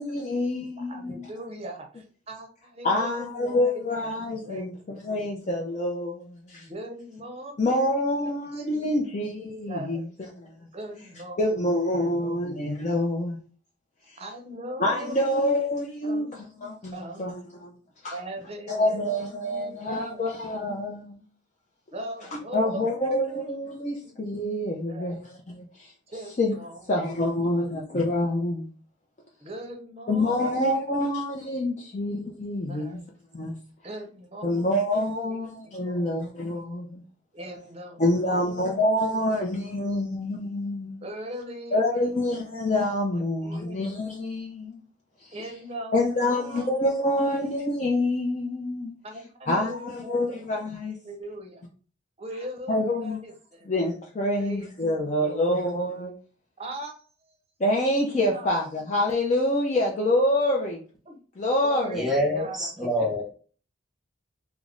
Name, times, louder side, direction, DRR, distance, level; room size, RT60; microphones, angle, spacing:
voice 1, 0.0-1.3 2.8-6.7 7.6-10.0 10.4-10.5 11.4-13.4 14.1-14.2 14.8-16.3 16.6-17.7 18.0-18.1 18.7-21.2 22.5-25.2 25.5-25.9 26.4-26.5 26.9-28.7 30.1-33.0 33.3-33.5 34.4-37.0 38.0-41.0 41.7-44.8 45.2-45.4 45.9-48.9 49.5-51.0 52.7-53.2 53.7-56.1 57.6-60.8 61.4-62.1, left 1 dB, 35° left, 0.4 m, -26 dB
voice 2, 0.8-5.3 6.7-9.1 9.7-10.1 10.7-11.6 11.9-12.4 14.2-15.6 16.0-16.5 16.9-17.5 18.1-20.4 21.9-23.0 23.3-23.5 24.0-24.2 24.8-25.2 26.1-26.9 27.5-27.7 29.4-31.1 32.7-33.1 33.8-34.7 35.0-35.4 35.6-36.2 37.3-39.4 39.9-40.0 41.0-42.5 43.1-43.8 45.3-47.5 49.0-50.4 51.0-51.6 52.2-53.7 54.3-55.6 56.6-56.9 57.3-57.4 58.3-58.6 60.0-60.1 61.1-61.2 61.6-62.7, right 1 dB, 30° right, 0.6 m, -40 dB
voice 3, 61.9-63.2, equal, ahead, 0.9 m, -26 dB
3.4 x 2.0 x 3.6 m
head